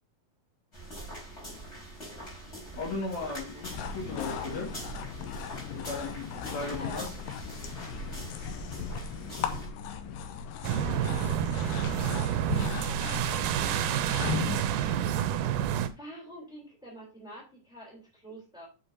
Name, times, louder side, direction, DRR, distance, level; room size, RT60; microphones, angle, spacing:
sound 1, 0.7-9.7, right 1 dB, 20° left, 4.6 m, -43 dB
voice 1, 2.8-4.7 5.6-7.1, left 3 dB, 60° left, -1 dB, 3.0 m, -36 dB
sound 2, 3.6-14.6, left 7 dB, 90° left, 2.6 m, -37 dB
voice 2, 6.6-7.1 10.8-11.4 12.8-14.6 15.9-18.7, equal, ahead, -3 dB, 3.1 m, -47 dB
sound 3, 10.6-15.9, right 10 dB, 80° right, 2.0 m, -29 dB
7.7 x 6.9 x 2.8 m, 0.30 s
omnidirectional pair, 3.9 m